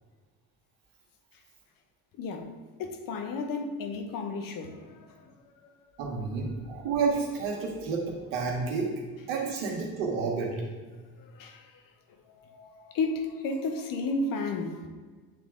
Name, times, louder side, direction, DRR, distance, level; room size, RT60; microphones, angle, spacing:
voice 1, 2.2-2.5 2.8-5.3 5.6-5.7 11.2-11.7 12.3-14.9, left 3 dB, 60° left, 0.9 m, -33 dB
voice 2, 6.0-8.9 9.3-10.5, right 4 dB, 85° right, 1.4 m, -30 dB
8.5 x 3.4 x 3.6 m
supercardioid pair, 75°, 37 cm